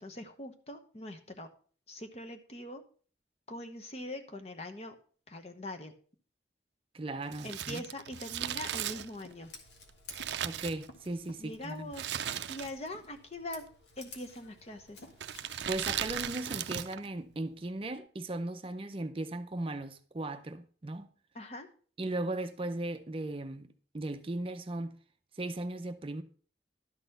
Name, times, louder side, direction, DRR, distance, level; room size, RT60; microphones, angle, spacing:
voice 1, 0.0-1.5 1.9-2.8 3.5-4.9 5.3-5.9 7.4-9.5 11.4-13.7 14.0-15.0 21.3-21.7, left 1 dB, 35° left, 1.0 m, -42 dB
voice 2, 6.9-7.8 10.4-11.9 15.7-21.1 22.0-23.7 23.9-24.9 25.3-26.2, right 2 dB, 30° right, 0.5 m, -37 dB
Crumpling crinkling, 7.3-11.3 11.9-13.0 13.2-13.3 14.1-14.5 15.1-17.1 17.3-17.4, right 10 dB, 85° right, 0.5 m, -37 dB
Scissors, 8.1-16.3, left 3 dB, 85° left, 1.8 m, -54 dB
12.0 x 4.1 x 6.6 m
head